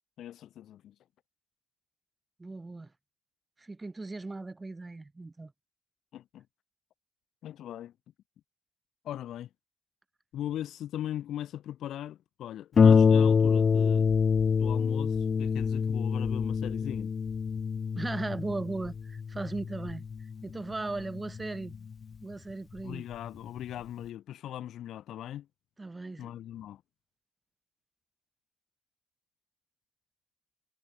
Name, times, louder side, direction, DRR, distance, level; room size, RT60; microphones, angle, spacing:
voice 1, 0.2-0.9 6.1-6.5 7.4-7.9 9.0-9.5 10.3-14.1 14.5-17.1 22.8-25.5 26.2-26.8, left 12 dB, 85° left, 2.9 m, -39 dB
voice 2, 2.4-2.9 3.6-5.5 18.0-20.0 20.4-21.8 22.2-23.0 25.8-26.3, right 3 dB, 25° right, 5.6 m, -37 dB
Harp, 12.8-21.9 22.8-22.9 23.3-23.4, left 6 dB, 55° left, 2.9 m, -26 dB
cardioid pair, 70°, 0 cm